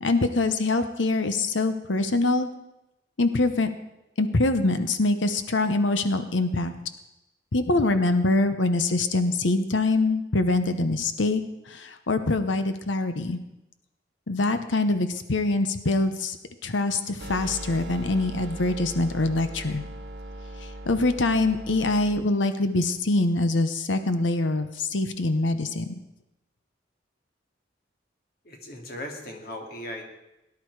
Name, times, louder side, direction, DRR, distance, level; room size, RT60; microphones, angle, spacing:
voice 1, 0.0-2.5 3.2-3.7 4.2-6.7 7.5-13.4 14.3-16.4 16.6-19.8 20.6-26.0, left 2 dB, 80° left, 9 dB, 0.9 m, -24 dB
sound 1, 17.2-22.2, right 1 dB, 60° right, 1.2 m, -39 dB
voice 2, 28.4-30.1, left 1 dB, 50° left, 2 dB, 2.5 m, -38 dB
18.5 x 11.0 x 4.8 m, 0.92 s
head